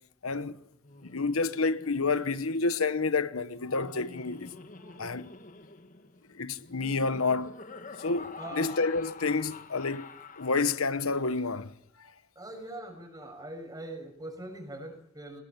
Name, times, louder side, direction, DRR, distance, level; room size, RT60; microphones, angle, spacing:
voice 1, 0.2-0.6 1.0-4.5 5.0-5.3 6.3-7.5 8.0-10.1 10.4-11.7, left 4 dB, 75° left, 1.2 m, -29 dB
Laughter, 0.7-11.2, left 3 dB, 35° left, 1.6 m, -48 dB
voice 2, 8.4-8.8 12.3-15.4, right 1 dB, 15° right, 6.2 m, -42 dB
23.0 x 20.5 x 8.8 m
head